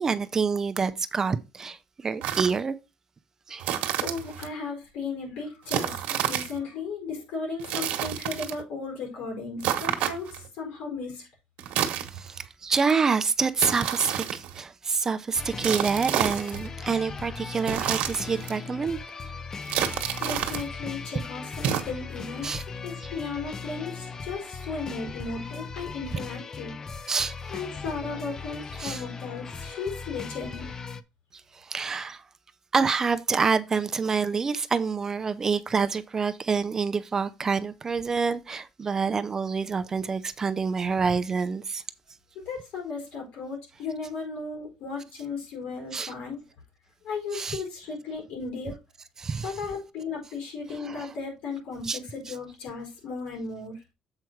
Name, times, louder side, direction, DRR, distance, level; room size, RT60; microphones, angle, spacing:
voice 1, 0.0-2.7 3.5-3.7 12.0-19.0 22.4-22.6 27.1-27.3 28.8-29.0 31.5-32.2 32.7-41.8 45.9-46.1 47.3-47.6 49.2-49.5 50.8-51.1 51.8-52.0 52.3-52.4, right 5 dB, 25° right, 0.5 m, -27 dB
sound 1, 2.2-2.6 3.6-4.5 5.7-6.6 7.6-8.6 9.6-10.5 11.6-12.5 13.6-14.6 15.6-16.7 17.6-18.6 19.6-20.7 21.6-21.8, right 11 dB, 85° right, 1.2 m, -29 dB
voice 2, 4.0-11.3 20.2-26.8 27.5-30.8 42.3-46.4 47.0-48.8 49.4-53.8, left 4 dB, 75° left, 4.8 m, -35 dB
sound 2, 15.3-31.0, left 4 dB, 25° left, 0.5 m, -38 dB
7.7 x 4.7 x 4.5 m
cardioid pair, 155°, 2 cm